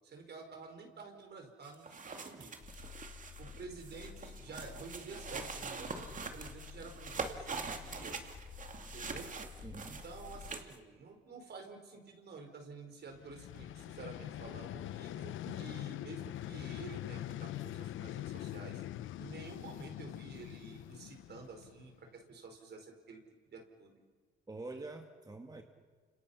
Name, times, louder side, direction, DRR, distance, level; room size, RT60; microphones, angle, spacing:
voice 1, 0.0-2.8 3.4-8.3 8.8-9.3 9.9-18.8 19.2-23.9, right 4 dB, 55° right, 4 dB, 5.1 m, -50 dB
sound 1, 1.7-10.8, right 4 dB, 40° right, 2.5 m, -44 dB
sound 2, 2.6-10.5, left 7 dB, 50° left, 4.0 m, -51 dB
voice 2, 9.6-10.0 15.5-15.6 24.5-25.6, right 2 dB, 20° right, 4 dB, 2.2 m, -46 dB
Vehicle, 13.1-22.1, left 13 dB, 80° left, 0.8 m, -43 dB
30.0 x 27.0 x 5.8 m, 1.5 s
cardioid pair, 90°, 20 cm